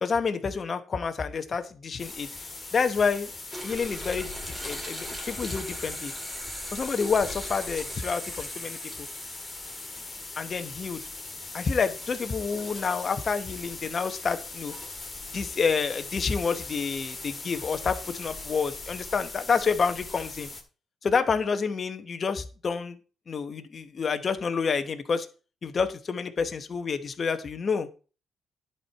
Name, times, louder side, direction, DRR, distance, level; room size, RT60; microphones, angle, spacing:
voice 1, 0.0-3.3 3.6-6.1 6.7-9.1 10.4-11.0 11.5-14.7 15.3-20.5 21.0-23.0 23.3-25.3 25.6-27.9, left 5 dB, 40° left, 9 dB, 1.0 m, -28 dB
sound 1, 2.0-20.6, left 3 dB, 25° left, 2.0 m, -40 dB
sound 2, 3.5-10.7 11.1-11.2 12.4-12.9, equal, 5° right, 2.3 m, -40 dB
11.0 x 4.5 x 4.6 m, 0.36 s
cardioid pair, 90°, 0 cm